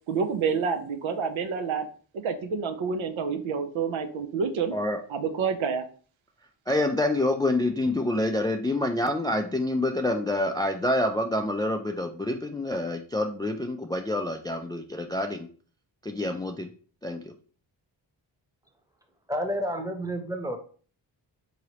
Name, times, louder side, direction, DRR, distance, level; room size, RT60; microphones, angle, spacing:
voice 1, 0.1-1.9 2.1-4.7 5.1-5.8, right 5 dB, 80° right, 7 dB, 0.6 m, -28 dB
voice 2, 6.7-15.5 16.0-16.7 17.0-17.2, left 1 dB, 10° left, 5 dB, 0.3 m, -27 dB
voice 3, 19.3-20.6, equal, 10° right, 5 dB, 0.9 m, -30 dB
3.9 x 3.0 x 2.9 m, 0.42 s
cardioid pair, 40°, 46 cm